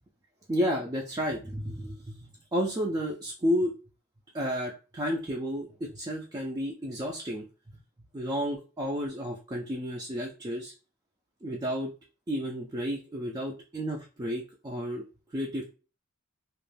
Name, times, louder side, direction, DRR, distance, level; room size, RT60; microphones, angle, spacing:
voice 1, 0.5-3.7 4.3-7.8 8.1-10.7 11.4-11.9 12.3-15.0 15.3-15.7, equal, 20° right, -1 dB, 0.3 m, -32 dB
2.4 x 2.1 x 3.2 m, 0.34 s
head